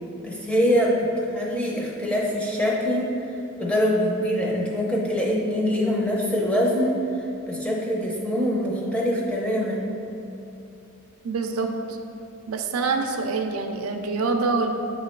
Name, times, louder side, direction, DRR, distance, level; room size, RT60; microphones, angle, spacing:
voice 1, 0.2-3.1 3.6-7.0 7.5-9.9, equal, 5° left, -3 dB, 0.7 m, -24 dB
voice 2, 11.2-12.0 12.5-14.7, right 4 dB, 80° right, 4 dB, 0.5 m, -25 dB
8.5 x 3.1 x 4.5 m, 2.9 s
head